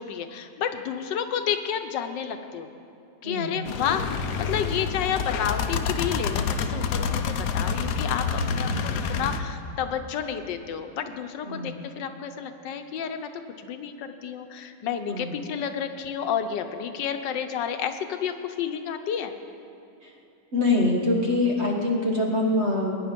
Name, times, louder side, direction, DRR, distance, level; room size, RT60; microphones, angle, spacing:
voice 1, 0.0-2.7 3.2-13.3 13.6-19.3, left 8 dB, 90° left, 8 dB, 1.5 m, -30 dB
voice 2, 3.2-3.6 8.6-8.9 11.4-11.8 15.1-15.4 20.5-23.0, left 2 dB, 40° right, -1 dB, 1.6 m, -24 dB
sound 1, 3.7-9.4, left 5 dB, 70° left, 1.3 m, -28 dB
21.0 x 10.0 x 5.2 m, 2.5 s
omnidirectional pair, 1.9 m